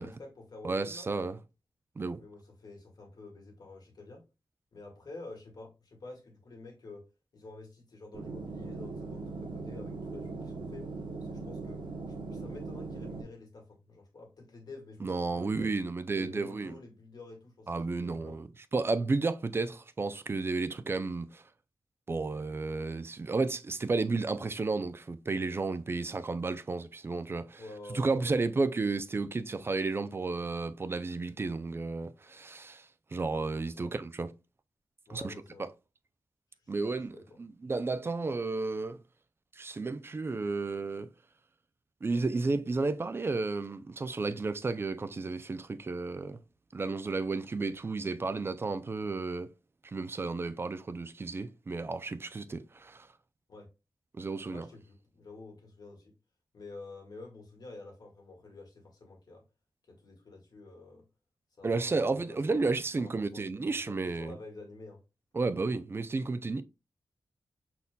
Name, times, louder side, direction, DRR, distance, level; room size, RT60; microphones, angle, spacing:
voice 1, 0.0-1.1 2.2-4.2 4.7-7.1 7.3-10.9 11.3-15.8 16.1-18.4 27.6-28.3 33.7-33.9 35.1-35.7 36.6-36.8 37.1-37.4 53.5-53.7 54.5-56.1 56.5-59.4 59.9-61.0 61.6-65.0, left 2 dB, 55° left, 1.9 m, -49 dB
voice 2, 0.6-1.4 2.0-2.2 15.0-16.8 17.7-18.5 18.7-21.4 22.1-27.6 27.9-32.9 33.1-34.3 35.1-35.3 35.6-35.7 36.7-39.0 39.6-41.1 42.0-46.4 46.7-49.5 49.8-53.1 54.2-54.7 61.6-64.4 65.3-66.6, right 3 dB, 30° right, 0.4 m, -32 dB
sound 1, 8.1-13.2, right 3 dB, 75° right, 1.1 m, -40 dB
5.4 x 4.2 x 2.2 m
wide cardioid pair, 145°, 8 cm